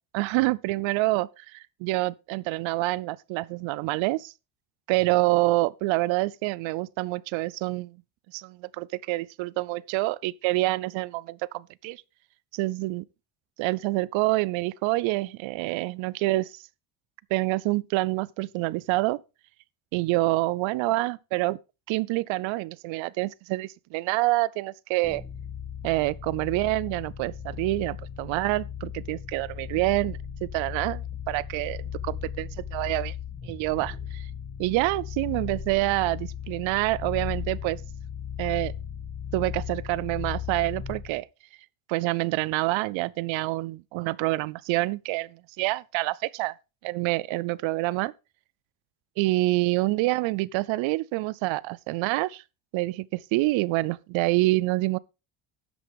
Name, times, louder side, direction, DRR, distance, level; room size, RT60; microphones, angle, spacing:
voice 1, 0.1-4.3 4.9-8.0 8.3-12.0 12.5-13.0 13.6-16.5 17.3-19.2 19.9-21.5 21.9-25.2 25.8-31.8 32.0-33.1 33.4-34.3 34.6-37.8 38.4-38.7 39.3-41.3 41.9-46.5 46.8-48.1 49.2-52.4 52.7-55.0, right 20 dB, 70° right, 0.6 m, -27 dB
sound 1, 25.0-41.2, left 8 dB, 25° left, 2.1 m, -36 dB
12.5 x 8.1 x 3.5 m
cardioid pair, 105°, 48 cm